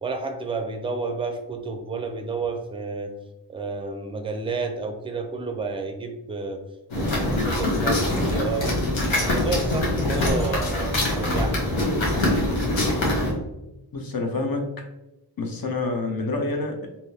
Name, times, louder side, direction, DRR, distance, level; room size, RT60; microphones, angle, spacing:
voice 1, 0.0-3.1 3.5-6.6 6.9-8.8 9.2-11.9, right 3 dB, 15° right, 6 dB, 0.4 m, -31 dB
sound 1, 6.9-13.3, left 1 dB, 90° left, 1.0 m, -23 dB
voice 2, 13.9-14.7 15.4-16.9, left 3 dB, 50° left, 3 dB, 0.7 m, -27 dB
3.4 x 2.7 x 2.7 m, 0.98 s
wide cardioid pair, 50°, 45 cm